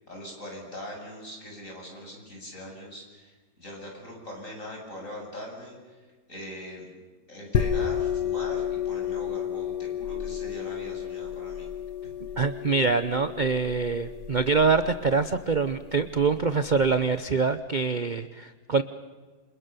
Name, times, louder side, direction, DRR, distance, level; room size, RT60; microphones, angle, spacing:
voice 1, 0.0-6.9 7.3-11.7, left 1 dB, 50° left, 0 dB, 8.4 m, -41 dB
sound 1, 7.5-16.9, left 8 dB, 90° left, 2.0 m, -32 dB
voice 2, 12.4-18.8, right 4 dB, 35° right, 10 dB, 0.8 m, -25 dB
28.5 x 27.5 x 6.9 m, 1.4 s
omnidirectional pair, 1.8 m